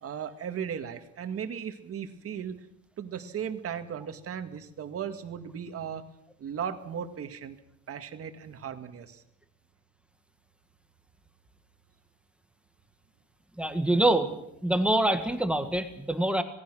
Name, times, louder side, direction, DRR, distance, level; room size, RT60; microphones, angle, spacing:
voice 1, 0.0-2.7 3.0-6.1 6.4-7.6 7.9-9.2, right 8 dB, 50° right, 8 dB, 2.0 m, -36 dB
voice 2, 13.6-14.4 14.6-16.4, right 1 dB, 5° right, 7 dB, 1.7 m, -25 dB
27.0 x 19.0 x 6.3 m, 0.82 s
cardioid pair, 155°, 30 cm